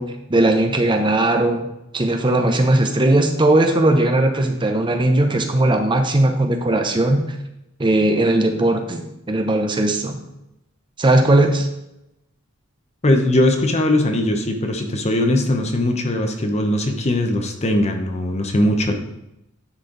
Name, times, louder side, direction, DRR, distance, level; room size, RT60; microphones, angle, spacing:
voice 1, 0.0-1.7 1.9-7.3 7.8-10.2 11.0-11.7, right 1 dB, 20° right, 5 dB, 0.6 m, -18 dB
voice 2, 13.0-18.9, left 1 dB, 30° left, 4 dB, 0.8 m, -20 dB
9.8 x 4.4 x 3.8 m, 0.88 s
head